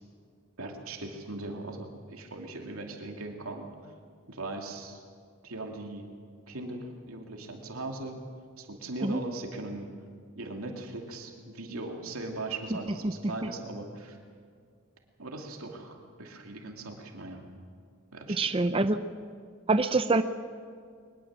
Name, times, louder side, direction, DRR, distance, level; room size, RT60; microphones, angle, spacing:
voice 1, 0.6-3.9 4.3-5.0 5.4-6.1 6.5-8.2 8.6-9.9 10.4-14.2 15.2-17.5 18.1-18.6, right 2 dB, 80° right, 2 dB, 2.7 m, -39 dB
voice 2, 18.4-19.0 19.7-20.2, right 3 dB, 25° right, 10 dB, 0.6 m, -25 dB
22.5 x 21.0 x 7.5 m, 2.1 s
head